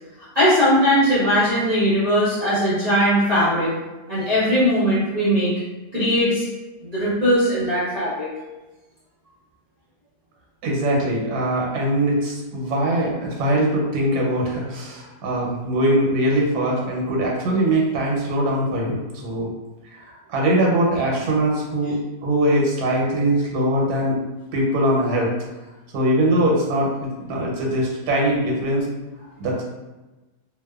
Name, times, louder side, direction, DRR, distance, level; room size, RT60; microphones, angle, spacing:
voice 1, 0.3-3.7 4.1-5.5 5.9-6.5 6.8-8.3, equal, 40° right, -12 dB, 0.5 m, -19 dB
voice 2, 10.6-19.5 19.9-24.2 24.5-25.3 25.9-28.9 29.2-29.6, right 1 dB, 85° right, -2 dB, 1.2 m, -22 dB
2.8 x 2.1 x 2.2 m, 1.1 s
omnidirectional pair, 1.7 m